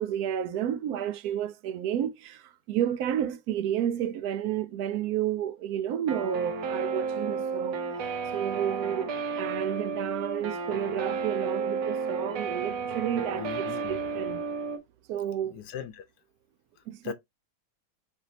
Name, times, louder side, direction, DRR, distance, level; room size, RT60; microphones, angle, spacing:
voice 1, 0.0-7.8 8.3-14.4 15.1-15.6 16.9-17.1, right 10 dB, 75° right, 1.0 m, -31 dB
Guitar, 6.1-14.8, right 5 dB, 90° right, 1.4 m, -32 dB
voice 2, 13.3-14.0 15.5-16.0 17.0-17.1, left 9 dB, 85° left, 1.3 m, -38 dB
7.1 x 2.7 x 2.7 m
omnidirectional pair, 1.7 m